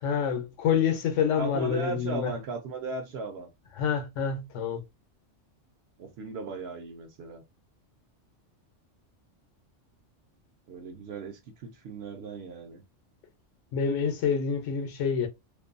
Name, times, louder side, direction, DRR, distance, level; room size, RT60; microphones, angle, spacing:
voice 1, 0.0-2.3 3.8-4.8 13.7-15.3, left 7 dB, 80° left, 1.0 m, -27 dB
voice 2, 1.3-3.5 6.0-7.4 10.7-12.8, right 3 dB, 65° right, 0.8 m, -37 dB
2.6 x 2.2 x 2.4 m
omnidirectional pair, 1.2 m